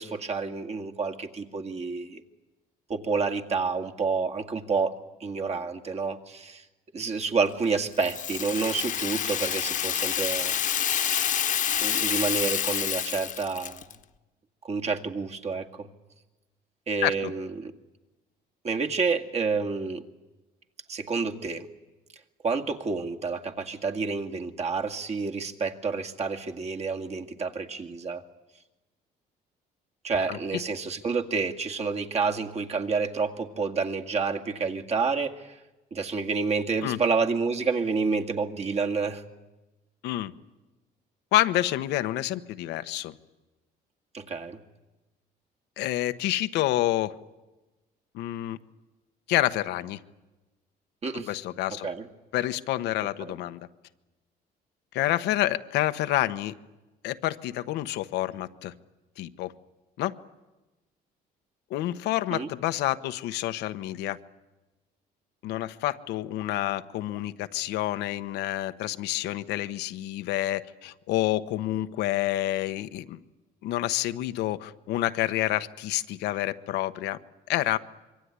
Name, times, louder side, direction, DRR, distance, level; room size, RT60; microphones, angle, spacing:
voice 1, 0.0-2.2 2.9-6.7 6.9-10.6 11.8-13.8 14.6-15.9 16.9-17.7 18.6-20.0 20.9-21.7 22.4-28.2 30.0-35.6 35.9-39.2 44.1-44.6 51.0-51.3 51.8-52.1 53.2-53.3 62.3-62.5, right 4 dB, 40° right, 4 dB, 2.1 m, -29 dB
Rattle (instrument), 8.0-14.0, left 9 dB, 50° left, 1.3 m, -28 dB
voice 2, 41.3-43.1 45.8-47.1 48.1-48.6 49.3-50.0 51.3-51.9 52.3-53.6 54.9-56.5 57.0-58.7 59.2-59.5 60.0-60.1 61.7-64.2 65.4-73.2 73.6-77.2 77.5-77.8, left 14 dB, 85° left, 11 dB, 1.1 m, -28 dB
25.5 x 23.5 x 9.7 m, 1.1 s
cardioid pair, 110°, 17 cm